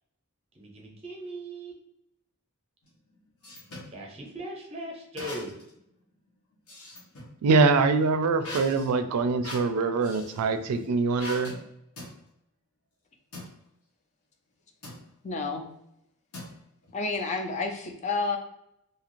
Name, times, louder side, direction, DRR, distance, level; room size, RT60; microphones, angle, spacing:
voice 1, 0.5-1.7 3.9-5.5, right 1 dB, 25° right, 0 dB, 0.6 m, -39 dB
sound 1, 2.8-3.9 5.2-5.7 6.1-7.3 8.4-10.4 11.2-11.6 12.0-12.2 13.3-13.5 14.8-15.1 16.3-16.9, left 2 dB, 85° left, 1.0 m, -41 dB
voice 2, 7.4-11.5, right 4 dB, 90° right, 9 dB, 0.4 m, -24 dB
voice 3, 15.2-15.7 16.9-18.4, left 3 dB, 30° left, 4 dB, 0.4 m, -30 dB
2.7 x 2.4 x 3.0 m, 0.79 s
head